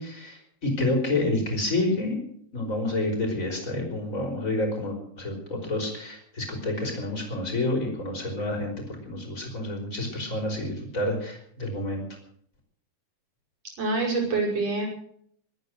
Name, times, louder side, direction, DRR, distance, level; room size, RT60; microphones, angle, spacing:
voice 1, 0.0-2.2 2.5-8.7 9.0-12.0, left 2 dB, 20° left, 2 dB, 5.1 m, -29 dB
voice 2, 13.8-14.9, right 3 dB, 40° right, 0 dB, 6.6 m, -26 dB
22.5 x 9.9 x 6.5 m, 0.64 s
omnidirectional pair, 4.6 m